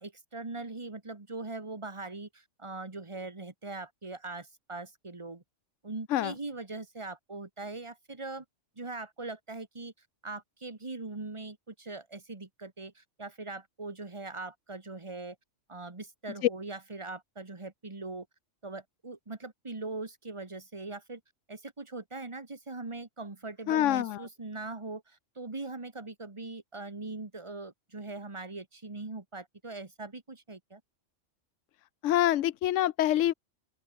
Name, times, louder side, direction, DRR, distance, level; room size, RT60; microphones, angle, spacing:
voice 1, 0.0-5.4 5.8-8.4 8.7-9.9 10.2-15.4 15.7-18.3 18.6-21.2 21.5-30.8, right 3 dB, 25° right, 1.7 m, -41 dB
voice 2, 23.7-24.2 32.0-33.3, left 13 dB, 85° left, 1.0 m, -26 dB
open air
omnidirectional pair, 1.2 m